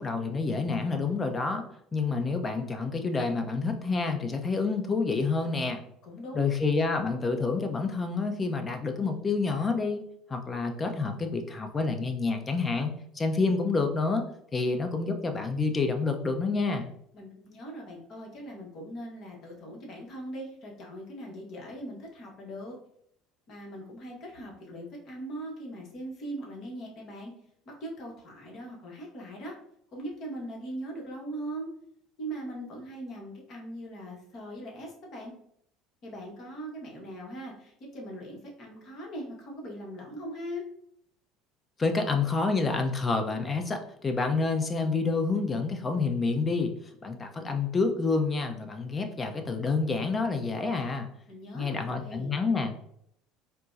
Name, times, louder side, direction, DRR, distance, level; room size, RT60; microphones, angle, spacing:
voice 1, 0.0-1.6 1.9-5.8 6.3-10.0 10.3-14.3 14.5-16.9 41.8-46.7 47.0-51.1 51.5-52.9, left 4 dB, 25° left, 5 dB, 0.5 m, -28 dB
voice 2, 6.0-6.6 17.1-22.8 23.5-27.3 27.7-29.5 29.9-31.7 32.2-35.3 36.0-40.6 51.3-52.4, right 1 dB, 55° left, -1 dB, 1.0 m, -40 dB
4.4 x 2.0 x 2.5 m, 0.71 s
hypercardioid pair, 85°, 0 cm